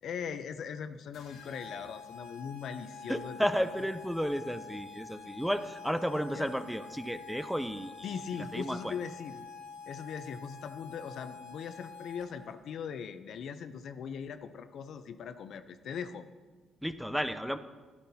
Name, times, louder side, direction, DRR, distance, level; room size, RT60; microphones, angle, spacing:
voice 1, 0.0-3.9 6.3-6.5 8.0-9.5 9.9-16.2, left 7 dB, 70° left, 10 dB, 0.6 m, -40 dB
sound 1, 1.1-12.5, left 5 dB, 90° left, 1.6 m, -47 dB
voice 2, 3.1-8.1 8.5-8.9 16.8-17.6, equal, ahead, 11 dB, 0.5 m, -33 dB
11.5 x 11.5 x 2.8 m, 1.3 s
cardioid pair, 90°, 0 cm